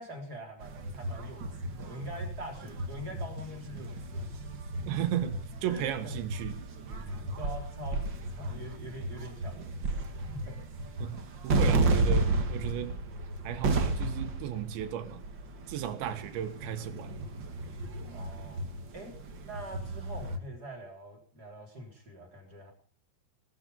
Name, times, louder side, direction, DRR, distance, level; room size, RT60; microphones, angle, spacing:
voice 1, 0.0-4.5 5.7-6.1 6.9-10.6 18.1-18.6 18.9-19.2 19.4-22.7, right 1 dB, 25° right, 1 dB, 3.9 m, -45 dB
sound 1, 0.6-20.4, right 2 dB, 75° right, 1.0 m, -33 dB
voice 2, 4.9-6.6 11.0-13.0 13.4-15.2 15.7-17.3, right 10 dB, 90° right, 8 dB, 3.8 m, -35 dB
18.5 x 12.5 x 5.4 m, 0.42 s
omnidirectional pair, 5.0 m